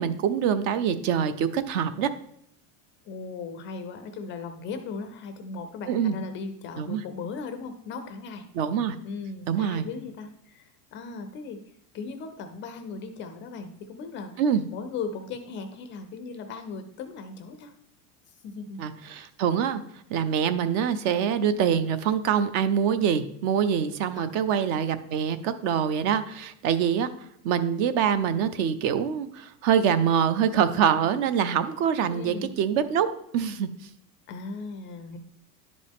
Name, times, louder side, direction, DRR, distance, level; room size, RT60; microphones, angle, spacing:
voice 1, 0.0-2.1 5.9-6.2 6.8-7.0 8.5-9.0 9.5-9.9 14.4-14.6 18.8-19.8 20.1-27.1 27.4-33.1 33.3-33.7, right 8 dB, 55° right, 12 dB, 0.6 m, -25 dB
voice 2, 3.1-8.5 9.0-11.6 11.9-14.3 14.7-17.7 18.4-18.8 19.2-19.3 24.2-24.4 32.1-32.6 34.3-35.2, left 4 dB, 30° left, 7 dB, 0.4 m, -37 dB
10.5 x 5.2 x 3.5 m, 0.71 s
supercardioid pair, 155°, 44 cm